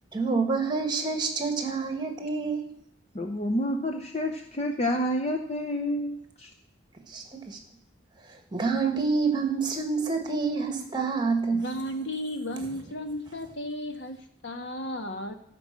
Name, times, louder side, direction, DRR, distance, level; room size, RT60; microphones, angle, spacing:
voice 1, 0.1-2.7 7.1-7.6 8.5-11.7, right 4 dB, 20° right, 4 dB, 1.7 m, -27 dB
voice 2, 3.1-6.5, equal, 30° left, 4 dB, 0.7 m, -29 dB
voice 3, 11.6-14.2 14.4-15.3, equal, 60° left, 6 dB, 1.4 m, -34 dB
14.0 x 6.0 x 7.5 m, 0.67 s
head